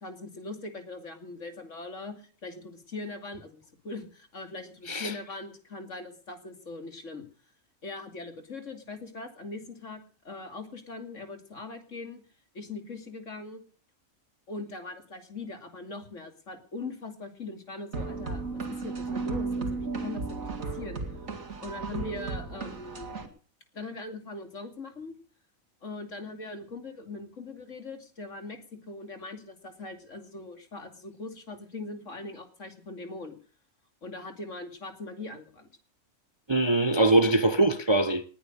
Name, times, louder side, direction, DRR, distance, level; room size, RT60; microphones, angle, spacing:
voice 1, 0.0-7.2 7.8-12.2 12.5-13.6 14.5-21.0 21.6-23.1 23.7-25.1 25.8-33.4 34.0-35.7, left 3 dB, 65° left, 2.9 m, -41 dB
sound 1, 17.9-23.3, right 4 dB, 70° right, 2.6 m, -34 dB
voice 2, 36.5-38.2, right 2 dB, 25° right, 0.7 m, -22 dB
20.0 x 10.0 x 6.7 m
omnidirectional pair, 1.4 m